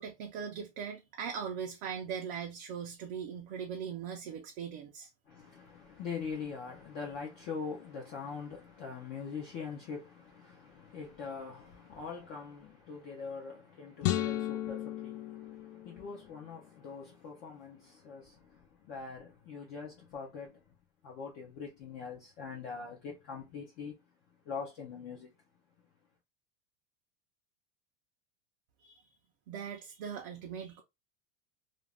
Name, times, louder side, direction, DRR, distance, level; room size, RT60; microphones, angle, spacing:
voice 1, 0.0-5.1 28.8-29.0 29.5-30.8, right 7 dB, 45° right, 0.5 m, -40 dB
voice 2, 5.3-20.7 21.0-24.0 24.4-25.3, left 5 dB, 25° left, 0.4 m, -43 dB
sound 1, 14.0-16.4, left 13 dB, 80° left, 0.5 m, -34 dB
2.5 x 2.2 x 3.3 m
supercardioid pair, 165°, 37 cm